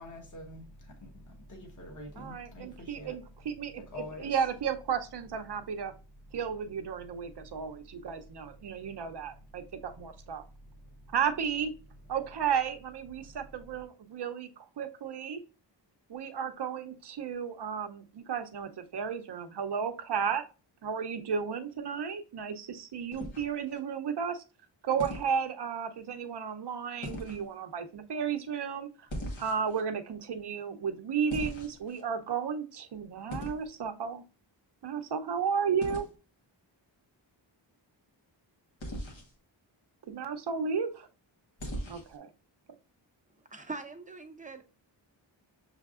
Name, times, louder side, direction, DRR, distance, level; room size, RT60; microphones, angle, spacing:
voice 1, 0.0-3.2 3.9-4.3, left 1 dB, 40° left, 1.1 m, -45 dB
voice 2, 2.2-5.9 6.3-10.4 11.1-11.7 12.1-15.4 16.1-20.4 20.8-24.4 24.8-28.9 29.4-34.2 34.8-36.1 40.1-41.1 41.9-42.3, right 7 dB, 60° right, 0.7 m, -33 dB
sound 1, 23.1-23.8 25.0-25.3 27.0-27.4 29.1-29.8 31.3-32.0 33.3-33.7 35.8-36.1 38.8-39.3 41.6-42.2, equal, 75° left, 1.4 m, -39 dB
voice 3, 43.5-44.6, right 3 dB, 15° right, 0.6 m, -42 dB
6.4 x 3.4 x 2.4 m
wide cardioid pair, 125°, 46 cm